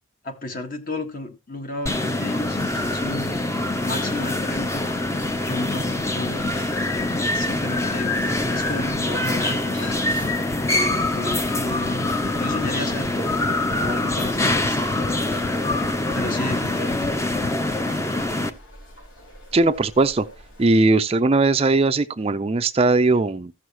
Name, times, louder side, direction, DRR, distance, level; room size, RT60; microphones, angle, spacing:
voice 1, 0.2-3.3 3.6-4.9 5.3-6.4 7.3-9.9 10.7-12.1 12.3-13.1 13.8-15.8 16.1-17.5, left 2 dB, 45° left, 1.6 m, -33 dB
sound 1, 1.9-18.5, left 2 dB, 15° left, 0.7 m, -24 dB
sound 2, 2.4-20.9, left 1 dB, 85° left, 4.0 m, -45 dB
sound 3, 10.1-17.8, left 3 dB, 70° left, 0.8 m, -34 dB
voice 2, 19.5-20.3 20.6-23.5, right 3 dB, 30° right, 0.4 m, -19 dB
15.0 x 6.3 x 2.9 m
head